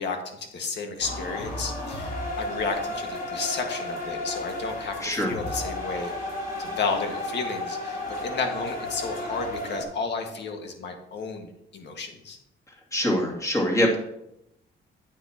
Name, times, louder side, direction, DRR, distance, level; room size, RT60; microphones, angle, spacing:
voice 1, 0.0-6.1 6.6-12.4, left 4 dB, 60° left, 4 dB, 1.7 m, -32 dB
sound 1, 1.0-9.8, left 1 dB, 45° left, 3.1 m, -33 dB
voice 2, 5.0-5.3 12.9-14.0, equal, 15° left, -1 dB, 2.4 m, -24 dB
9.2 x 8.8 x 2.9 m, 0.82 s
cardioid pair, 90°, 20 cm